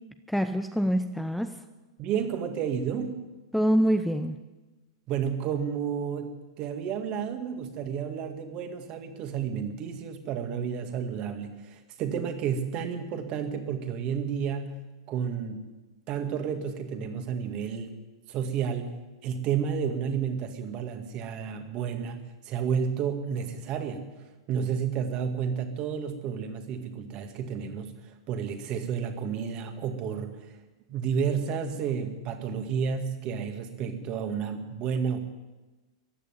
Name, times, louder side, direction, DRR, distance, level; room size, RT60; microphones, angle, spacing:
voice 1, 0.3-1.6 3.5-4.4, equal, ahead, 7 dB, 0.7 m, -25 dB
voice 2, 2.0-3.2 5.1-14.8 15.1-15.6 16.1-18.0 18.3-18.9 19.2-24.1 24.5-30.6 30.9-35.2, right 7 dB, 40° right, 6 dB, 2.1 m, -31 dB
15.0 x 10.5 x 9.2 m, 1.2 s
hypercardioid pair, 110°, 3 cm